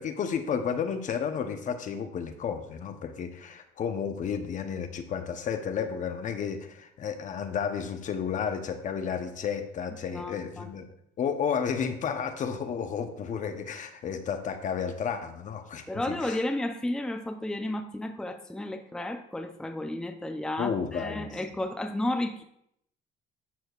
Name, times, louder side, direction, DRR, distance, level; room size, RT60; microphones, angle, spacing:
voice 1, 0.0-10.9 11.2-16.4 20.6-21.3, left 7 dB, 50° left, 7 dB, 0.8 m, -32 dB
voice 2, 10.1-10.7 15.9-22.4, left 1 dB, 5° left, 5 dB, 0.5 m, -32 dB
11.5 x 6.2 x 2.4 m, 0.74 s
cardioid pair, 110°, 17 cm